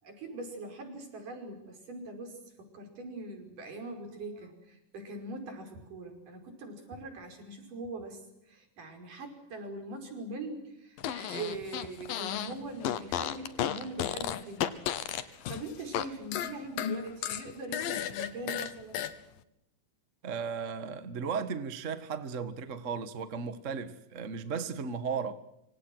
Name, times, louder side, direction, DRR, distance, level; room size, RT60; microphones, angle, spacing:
voice 1, 0.0-8.2 8.5-14.8 15.0-19.1 24.5-24.7, right 2 dB, 65° right, 6.9 m, -42 dB
Fart, 11.0-12.5 12.8-16.1 16.3-19.1, left 10 dB, 80° left, 3.1 m, -33 dB
voice 2, 20.2-25.4, right 6 dB, 45° right, 1.0 m, -35 dB
26.5 x 26.5 x 6.3 m
omnidirectional pair, 4.0 m